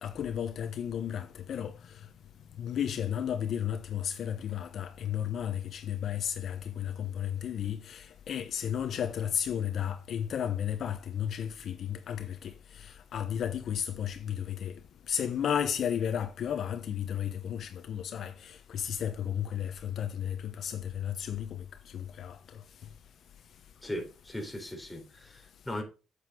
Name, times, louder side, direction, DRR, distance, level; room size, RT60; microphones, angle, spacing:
voice 1, 0.0-2.0 2.6-14.8 15.1-22.4, left 9 dB, 65° left, 0.9 m, -33 dB
voice 2, 23.8-25.8, left 1 dB, 5° left, 3.9 m, -38 dB
8.0 x 7.9 x 3.8 m
cardioid pair, 90°, 0 cm